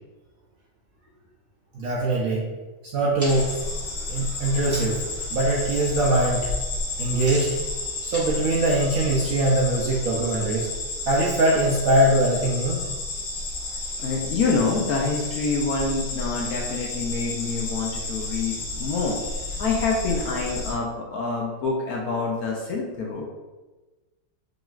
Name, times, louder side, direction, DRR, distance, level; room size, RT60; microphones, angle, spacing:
voice 1, 1.7-2.5 2.8-3.5 4.1-5.0 5.3-6.5 7.0-7.6 8.0-10.7 11.1-12.8, right 1 dB, 70° right, -3 dB, 0.8 m, -22 dB
sound 1, 3.2-5.1 5.5-5.9 6.2-9.5, equal, 10° right, 1.0 m, -40 dB
sound 2, 3.3-20.7, left 2 dB, 90° left, 1.7 m, -31 dB
voice 2, 14.0-19.2 19.6-23.2, left 4 dB, 70° left, -1 dB, 0.9 m, -26 dB
5.0 x 3.0 x 2.3 m, 1.2 s
omnidirectional pair, 2.0 m